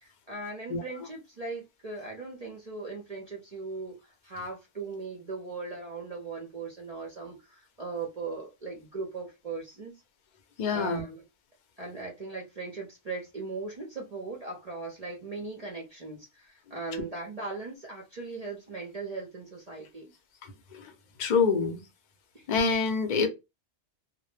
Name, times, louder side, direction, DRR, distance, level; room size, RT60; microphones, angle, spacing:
voice 1, 0.0-9.9 10.7-11.2 11.8-20.1 22.3-22.5, right 3 dB, 45° right, 0.5 m, -39 dB
voice 2, 10.6-11.0 20.4-20.9 21.2-21.8 22.5-23.3, left 5 dB, 50° left, 0.6 m, -26 dB
2.1 x 2.1 x 3.1 m
omnidirectional pair, 1.2 m